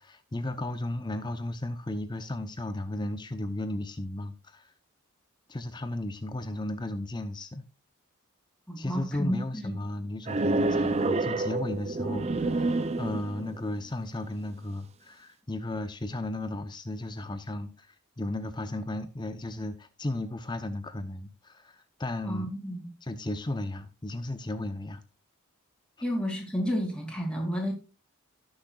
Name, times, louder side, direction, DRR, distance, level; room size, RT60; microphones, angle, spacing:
voice 1, 0.0-4.7 5.5-7.6 8.8-22.5 23.0-25.0, left 1 dB, 20° left, 0.7 m, -35 dB
voice 2, 8.7-9.7 22.2-22.9 26.0-27.7, equal, 5° left, 2.6 m, -31 dB
sound 1, 10.3-13.6, right 2 dB, 30° right, 0.5 m, -28 dB
17.5 x 6.4 x 2.4 m
head